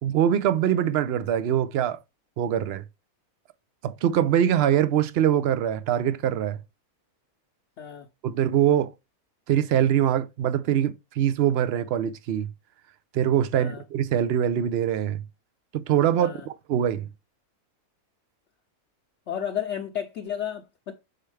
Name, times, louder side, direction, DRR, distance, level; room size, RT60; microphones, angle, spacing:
voice 1, 0.0-2.0 2.4-2.8 3.8-6.6 8.2-8.9 9.5-12.5 13.1-15.2 15.7-17.1, right 10 dB, 65° right, 0.6 m, -23 dB
voice 2, 7.8-8.1 13.5-13.8 16.2-16.5 19.3-20.9, left 9 dB, 60° left, 0.9 m, -32 dB
6.8 x 4.6 x 3.2 m
omnidirectional pair, 1.6 m